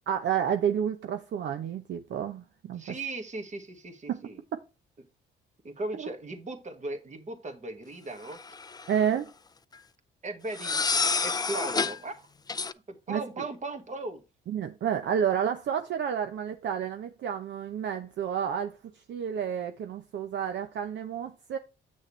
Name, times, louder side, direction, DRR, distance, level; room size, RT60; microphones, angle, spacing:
voice 1, 0.1-3.0 4.1-4.2 5.9-6.1 8.9-9.3 13.1-13.2 14.5-21.6, right 8 dB, 65° right, 0.8 m, -30 dB
voice 2, 2.8-4.4 5.6-8.4 10.2-12.2 12.9-14.2, right 2 dB, 35° right, 1.7 m, -37 dB
sound 1, 8.3-9.0 10.5-12.0 12.5-12.7, left 4 dB, 20° left, 0.5 m, -28 dB
8.5 x 6.4 x 3.2 m
cardioid pair, 90°, 20 cm